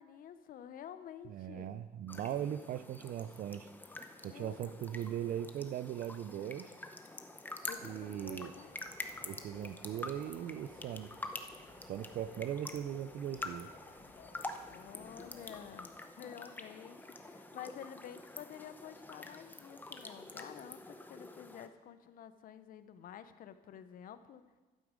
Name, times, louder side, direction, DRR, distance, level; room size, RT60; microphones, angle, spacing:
voice 1, 0.0-1.7 4.3-4.7 7.7-8.7 14.7-24.4, left 9 dB, 55° left, 12 dB, 0.7 m, -50 dB
voice 2, 1.3-3.7 4.2-6.7 7.8-8.5 9.2-11.1 11.9-13.7, right 10 dB, 55° right, 16 dB, 0.4 m, -39 dB
sound 1, 2.1-21.7, left 2 dB, 10° left, 0.7 m, -47 dB
sound 2, 7.6-15.8, left 3 dB, 85° left, 2.9 m, -60 dB
11.5 x 8.2 x 5.0 m, 1.3 s
cardioid pair, 110°, 17 cm